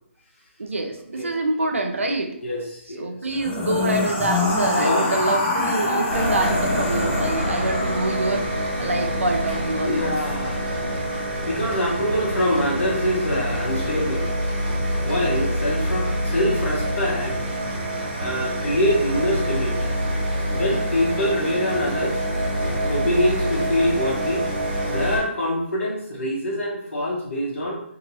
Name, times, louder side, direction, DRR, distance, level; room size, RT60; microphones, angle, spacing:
voice 1, 0.6-2.3 3.0-10.1, right 2 dB, 85° right, 3 dB, 0.6 m, -26 dB
voice 2, 2.4-3.2 4.7-5.3 6.4-6.5 7.0-7.8 8.7-8.9 9.8-10.6 11.4-14.3 15.0-17.3 18.2-19.9 20.5-22.2 22.8-24.5 24.8-27.8, equal, 75° left, -5 dB, 1.1 m, -25 dB
sound 1, 3.3-8.5, left 2 dB, 20° left, 0.6 m, -25 dB
sound 2, 6.1-25.2, equal, 40° right, 1.2 m, -26 dB
2.9 x 2.7 x 2.7 m, 0.71 s
figure-of-eight pair, 145°, 7 cm